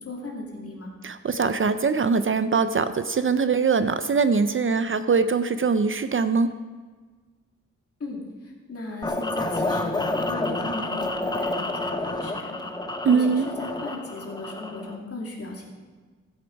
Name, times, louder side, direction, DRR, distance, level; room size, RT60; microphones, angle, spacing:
voice 1, 0.0-0.9 8.0-12.8 13.1-15.7, left 2 dB, 50° left, -1 dB, 2.5 m, -37 dB
voice 2, 1.0-6.5 13.0-13.5, right 5 dB, 40° right, 11 dB, 0.5 m, -22 dB
sound 1, 9.0-15.0, left 2 dB, 15° left, 0.6 m, -29 dB
16.0 x 7.6 x 5.3 m, 1.4 s
wide cardioid pair, 175°, 31 cm